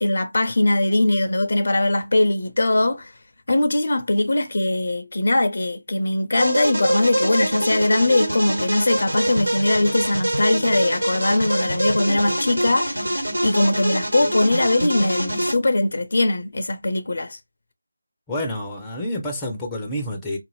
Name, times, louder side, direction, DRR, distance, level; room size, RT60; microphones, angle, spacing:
voice 1, 0.0-3.1 3.5-17.4, left 2 dB, 55° left, 0.5 m, -21 dB
sound 1, 6.4-15.5, right 1 dB, 85° right, 1.7 m, -24 dB
voice 2, 18.3-20.4, left 1 dB, 5° left, 0.6 m, -28 dB
2.5 x 2.5 x 3.0 m
figure-of-eight pair, 165°, 0 cm